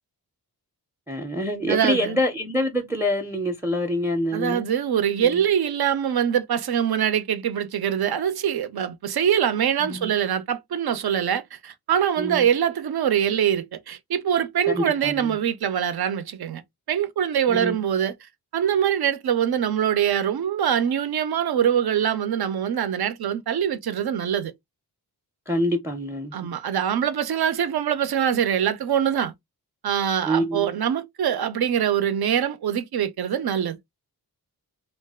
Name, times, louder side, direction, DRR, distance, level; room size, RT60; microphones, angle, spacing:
voice 1, 1.1-4.7 5.2-5.5 9.8-10.1 12.2-12.5 14.7-15.4 17.5-17.8 25.5-26.5 30.2-30.7, equal, 5° right, 0.5 m, -26 dB
voice 2, 1.7-2.2 4.3-16.6 16.9-18.1 18.5-24.5 26.3-29.3 29.8-33.8, right 9 dB, 70° right, 0.6 m, -23 dB
2.5 x 2.3 x 3.4 m
wide cardioid pair, 90°, 39 cm